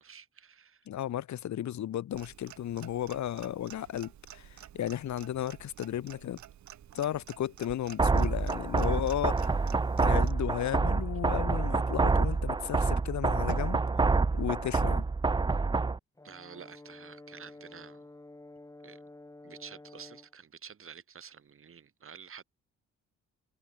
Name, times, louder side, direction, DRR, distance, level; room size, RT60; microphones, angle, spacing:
voice 1, 0.0-0.9 16.2-18.0 18.8-19.0 19.4-22.4, right 7 dB, 45° right, 3.2 m, -49 dB
voice 2, 0.9-6.4 6.9-9.6 10.0-13.8 14.3-15.0, left 11 dB, 70° left, 2.6 m, -34 dB
Clock, 2.1-10.3, right 11 dB, 65° right, 3.8 m, -51 dB
sound 1, 8.0-16.0, right 3 dB, 15° right, 0.6 m, -27 dB
Brass instrument, 16.2-20.3, left 2 dB, 10° left, 2.3 m, -51 dB
cardioid pair, 90°, 30 cm